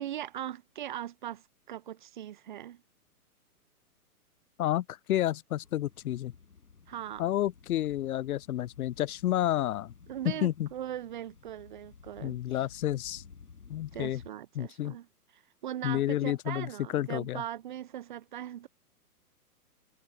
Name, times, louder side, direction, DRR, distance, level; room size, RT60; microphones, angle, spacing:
voice 1, 0.0-2.8 6.9-7.2 10.1-12.6 13.9-15.1 15.3-18.7, right 11 dB, 35° right, 0.4 m, -40 dB
voice 2, 4.6-6.3 7.2-9.9 10.2-10.7 12.2-13.2 13.7-14.2 14.6-14.9 15.8-17.4, left 13 dB, 70° left, 0.6 m, -30 dB
sound 1, 5.6-14.3, left 5 dB, 85° left, 5.0 m, -55 dB
hypercardioid pair, 130°, 46 cm